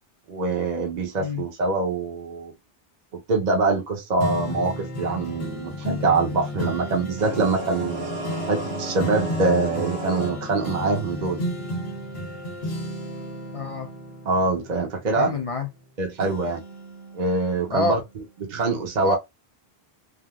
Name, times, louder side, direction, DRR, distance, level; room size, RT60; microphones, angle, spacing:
voice 1, 0.3-2.5 3.3-8.1 8.5-11.4 14.3-15.3 16.0-16.6 17.1-18.0 18.4-19.2, right 3 dB, 50° right, 0.8 m, -24 dB
sound 1, 4.2-15.8 16.2-18.1 18.6-18.7, equal, 75° left, 1.2 m, -33 dB
sound 2, 7.2-10.6, right 1 dB, 75° right, 1.3 m, -33 dB
voice 2, 13.5-13.9 15.2-15.7 17.7-18.0 19.0-19.2, left 3 dB, 50° left, 0.4 m, -27 dB
3.6 x 2.5 x 2.3 m
omnidirectional pair, 1.0 m